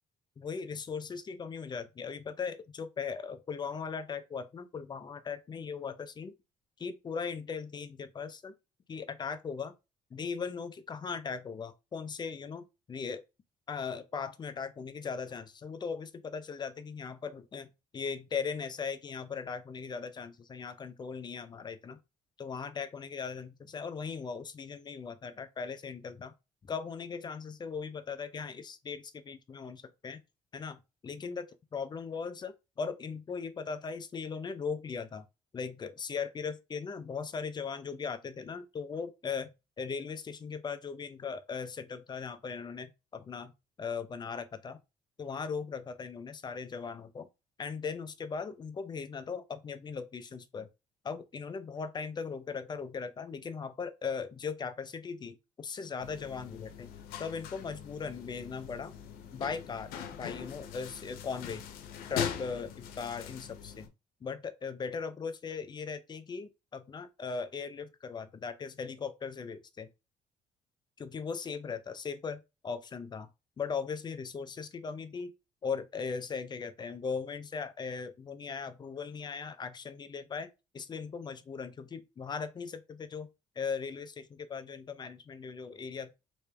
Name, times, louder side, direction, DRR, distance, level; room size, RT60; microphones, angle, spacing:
voice 1, 0.4-6.3 6.8-8.5 8.9-9.7 10.1-13.2 13.7-22.0 22.4-26.3 26.6-30.2 30.5-31.5 31.7-35.3 35.5-39.5 39.8-43.5 43.8-44.8 45.2-47.3 47.6-50.7 51.0-56.9 57.2-58.9 59.3-61.6 62.1-63.9 64.2-69.9 71.0-73.3 73.6-75.3 75.6-80.5 80.7-83.3 83.6-86.1, left 5 dB, 30° left, 0.5 m, -38 dB
sound 1, 56.0-63.9, left 8 dB, 90° left, 0.7 m, -41 dB
3.1 x 3.0 x 3.3 m
cardioid pair, 115°, 15 cm